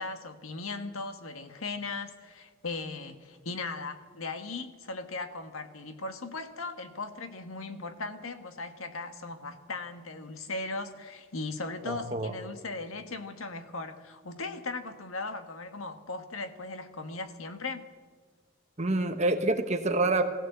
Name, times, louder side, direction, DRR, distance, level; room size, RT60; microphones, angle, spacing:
voice 1, 0.0-17.8, left 3 dB, 85° left, 8 dB, 1.5 m, -38 dB
voice 2, 11.8-12.3 18.8-20.2, right 2 dB, 35° right, 7 dB, 1.2 m, -27 dB
20.0 x 16.0 x 8.0 m, 1.5 s
head